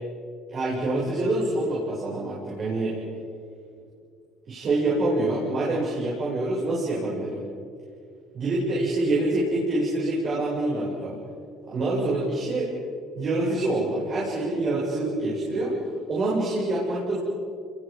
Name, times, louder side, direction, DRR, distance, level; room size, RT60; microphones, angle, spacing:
voice 1, 0.5-3.0 4.5-7.4 8.3-11.2 11.7-12.7 13.2-15.8 16.1-17.2, right 2 dB, 45° right, -5 dB, 7.6 m, -26 dB
29.0 x 23.0 x 5.5 m, 2.3 s
supercardioid pair, 95°, 0 cm